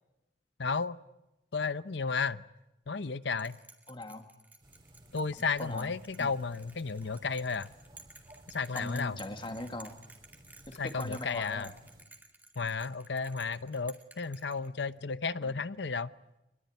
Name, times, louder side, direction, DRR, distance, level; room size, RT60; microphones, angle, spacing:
voice 1, 0.6-1.0 1.5-2.4 2.9-3.6 5.1-7.7 8.5-9.2 10.8-11.7 12.6-16.1, left 4 dB, 75° left, 0.8 m, -33 dB
Bell, 3.4-15.0, right 2 dB, 10° right, 2.5 m, -54 dB
voice 2, 3.9-4.3 5.6-5.9 6.2-6.3 8.7-10.0 10.7-11.7 15.4-15.6, left 1 dB, 25° left, 2.2 m, -40 dB
sound 1, 4.6-12.0, right 1 dB, 25° right, 3.6 m, -57 dB
25.0 x 22.0 x 9.5 m
head